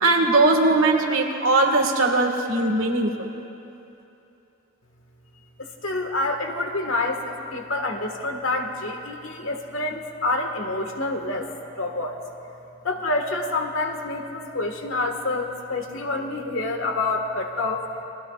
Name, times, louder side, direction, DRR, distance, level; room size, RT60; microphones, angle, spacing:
voice 1, 0.0-3.3, right 2 dB, 80° right, 3 dB, 1.7 m, -20 dB
voice 2, 5.8-11.5 11.8-12.2 12.8-17.9, left 2 dB, 75° left, 3 dB, 1.6 m, -27 dB
28.5 x 20.0 x 2.4 m, 2.9 s
head